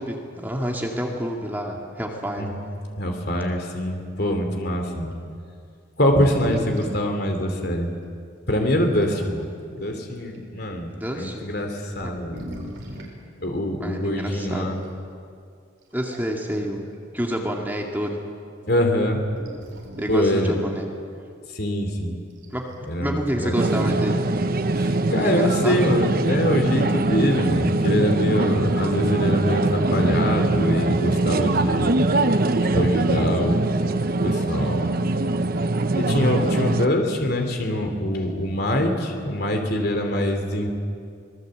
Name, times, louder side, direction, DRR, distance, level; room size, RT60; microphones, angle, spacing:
voice 1, 0.0-2.5 10.9-11.5 12.0-12.1 13.8-14.7 15.9-16.8 17.1-18.2 20.0-20.9 22.5-22.6 23.0-24.2 25.2-25.8 37.2-37.3, equal, 10° right, 0 dB, 2.1 m, -28 dB
voice 2, 2.4-2.7 3.0-5.1 6.0-7.9 8.5-12.5 13.4-14.8 18.7-19.2 20.1-20.5 21.5-22.2 22.9-23.5 24.8-31.9 32.7-34.0 34.2-34.9 36.0-40.7, left 1 dB, 55° left, 3 dB, 3.1 m, -24 dB
sound 1, 5.1-5.2 6.0-7.1 8.0-8.1 8.8-9.4 10.1-10.4 11.2-11.3 11.9-13.2 14.8-15.0 15.8-16.5 16.9-17.0 19.3-20.2 22.3-22.8, equal, 65° right, 4.8 m, -37 dB
sound 2, 23.6-36.9, right 2 dB, 50° right, 0.8 m, -22 dB
25.5 x 19.5 x 7.9 m, 2.3 s
head